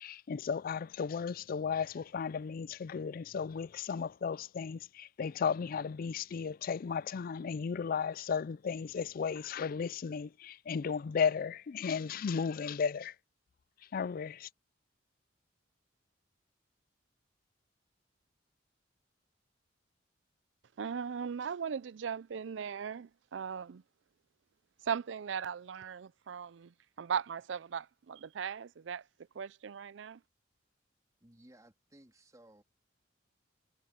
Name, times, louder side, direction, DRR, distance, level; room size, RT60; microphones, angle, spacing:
voice 1, 0.0-13.1 13.9-14.5, left 6 dB, 45° left, 0.3 m, -35 dB
voice 2, 20.8-23.8 24.8-29.0 29.4-30.2, right 7 dB, 70° right, 0.4 m, -38 dB
voice 3, 31.2-32.6, right 1 dB, 20° right, 3.1 m, -59 dB
head